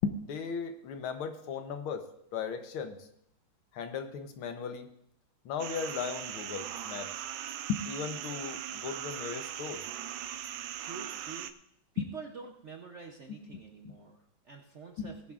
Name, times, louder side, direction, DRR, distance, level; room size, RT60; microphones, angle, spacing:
voice 1, 0.0-2.1 2.3-3.1 3.7-4.9 5.5-7.1 7.7-9.8 12.0-12.1 13.3-13.9 15.0-15.1, left 6 dB, 90° left, 8 dB, 1.8 m, -36 dB
sound 1, 5.6-11.5, right 10 dB, 75° right, 1.3 m, -40 dB
voice 2, 10.8-11.5 11.9-15.1, right 5 dB, 60° right, 2 dB, 0.7 m, -47 dB
18.5 x 11.0 x 2.5 m, 0.75 s
omnidirectional pair, 2.2 m